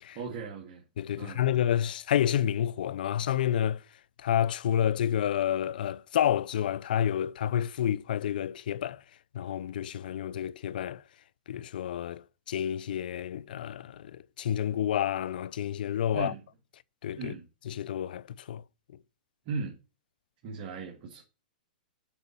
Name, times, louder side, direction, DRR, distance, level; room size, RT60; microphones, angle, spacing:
voice 1, 0.1-0.8 1.2-1.5 16.1-16.4 17.2-17.5 19.5-19.8 20.4-21.2, right 4 dB, 40° right, 2.0 m, -37 dB
voice 2, 1.0-3.8 4.2-9.0 9.3-11.0 11.5-12.2 12.5-14.1 14.4-16.3 17.0-17.3 17.7-18.6, left 10 dB, 70° left, 0.5 m, -29 dB
6.9 x 5.6 x 7.1 m
hypercardioid pair, 140°, 5 cm